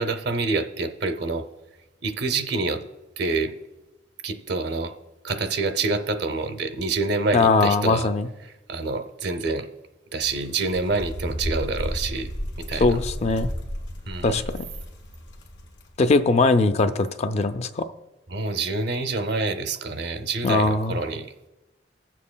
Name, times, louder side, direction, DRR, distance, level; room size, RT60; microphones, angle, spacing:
voice 1, 0.0-1.5 2.0-2.8 3.2-3.5 4.2-4.9 5.2-8.1 8.4-9.7 10.1-12.3 12.6-13.0 14.1-14.4 18.3-21.3, right 3 dB, 60° right, 8 dB, 0.6 m, -27 dB
voice 2, 7.3-8.3 12.7-13.5 14.2-14.6 16.0-17.9 20.4-21.0, left 3 dB, 35° left, 10 dB, 0.4 m, -21 dB
sound 1, 10.2-15.9, equal, 75° left, 1.4 m, -33 dB
18.0 x 7.4 x 2.2 m, 1.0 s
head